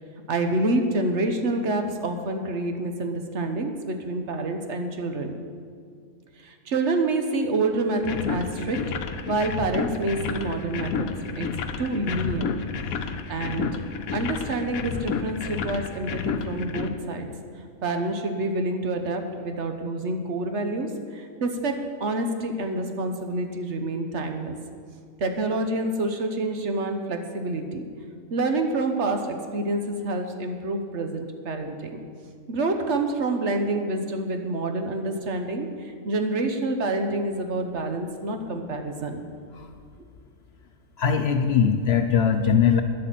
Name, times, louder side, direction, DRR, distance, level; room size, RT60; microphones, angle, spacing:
voice 1, 0.3-5.3 6.4-8.9 9.3-11.1 11.4-11.5 11.8-12.6 13.3-13.8 14.1-17.3 17.8-24.6 25.2-27.9 28.3-32.0 32.5-39.3, right 2 dB, 60° right, 5 dB, 1.2 m, -27 dB
sound 1, 8.0-16.9, left 6 dB, 80° left, 1.2 m, -31 dB
voice 2, 41.0-42.8, left 7 dB, 60° left, 6 dB, 0.8 m, -20 dB
10.0 x 8.1 x 7.5 m, 2.2 s
omnidirectional pair, 1.5 m